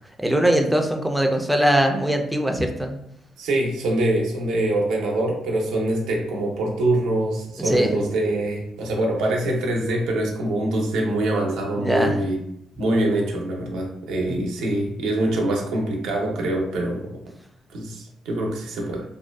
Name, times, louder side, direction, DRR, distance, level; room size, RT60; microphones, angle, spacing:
voice 1, 0.2-3.0 7.6-7.9 11.8-12.2 14.3-14.4, right 1 dB, 5° right, 4 dB, 0.4 m, -21 dB
voice 2, 3.4-12.4 12.8-17.1 17.7-19.0, right 1 dB, 85° right, 0 dB, 0.6 m, -24 dB
2.5 x 2.2 x 2.2 m, 0.75 s
cardioid pair, 90°, 0 cm